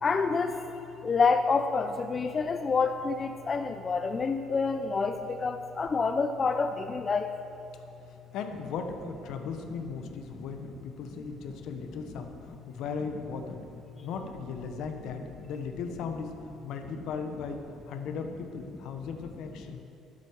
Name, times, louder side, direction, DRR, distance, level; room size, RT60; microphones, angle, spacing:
voice 1, 0.0-0.6 1.0-7.3, left 4 dB, 40° left, 7 dB, 0.6 m, -27 dB
voice 2, 8.3-13.6 14.0-16.4 16.6-17.6 17.9-19.8, left 5 dB, 70° left, 6 dB, 1.2 m, -37 dB
11.5 x 9.1 x 6.3 m, 2.7 s
supercardioid pair, 70°, 0 cm